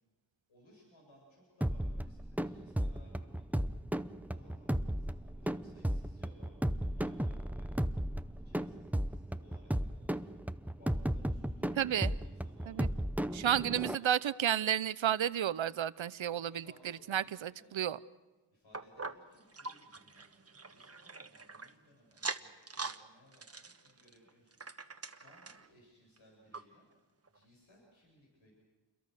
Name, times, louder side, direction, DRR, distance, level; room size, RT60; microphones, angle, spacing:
voice 1, 0.5-3.7 4.1-14.0 16.3-17.7 18.5-24.6 25.0-26.8 27.2-28.5, equal, 85° left, -2 dB, 7.5 m, -63 dB
sound 1, 1.6-13.9, right 1 dB, 5° right, 0.7 m, -35 dB
voice 2, 11.8-12.1 12.7-12.9 13.4-16.6 17.1-18.0, right 10 dB, 80° right, 17 dB, 0.8 m, -31 dB
sound 2, 18.7-21.7 22.1-23.0 23.3-25.7 26.2-26.3 26.5-26.6 27.3-27.4, right 4 dB, 30° right, 1.3 m, -43 dB
28.0 x 22.5 x 6.6 m, 1.2 s
cardioid pair, 60°, 46 cm